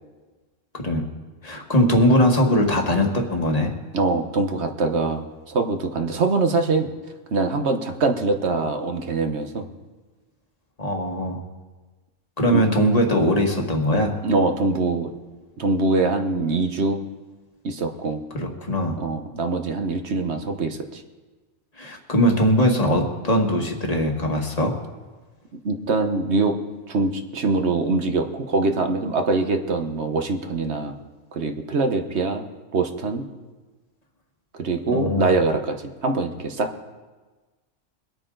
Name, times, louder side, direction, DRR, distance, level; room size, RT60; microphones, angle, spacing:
voice 1, 0.7-1.1 1.4-3.8 10.8-11.4 12.4-14.2 18.3-19.0 21.8-24.8 34.9-35.3, equal, 30° left, 2 dB, 1.7 m, -21 dB
voice 2, 3.9-6.9 7.3-9.7 12.5-12.6 14.2-15.1 15.6-17.0 17.6-18.2 19.0-21.0 25.6-26.6 26.9-31.0 31.3-32.4 32.7-33.2 34.5-36.7, right 3 dB, 60° right, 6 dB, 1.3 m, -23 dB
23.5 x 8.7 x 3.9 m, 1.3 s
omnidirectional pair, 1.4 m